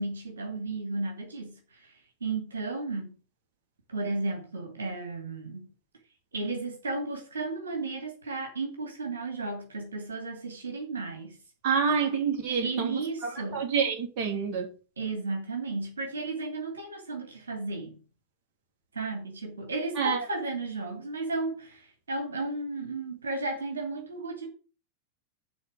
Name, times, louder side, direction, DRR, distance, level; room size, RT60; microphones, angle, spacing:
voice 1, 0.0-3.1 3.9-5.7 6.3-11.4 12.6-13.7 15.0-18.0 18.9-24.5, right 3 dB, 70° right, 2.6 m, -34 dB
voice 2, 11.6-13.0 13.5-14.7 20.0-20.2, right 6 dB, 40° right, 3.1 m, -27 dB
11.0 x 4.2 x 7.5 m
figure-of-eight pair, 90°, 0 cm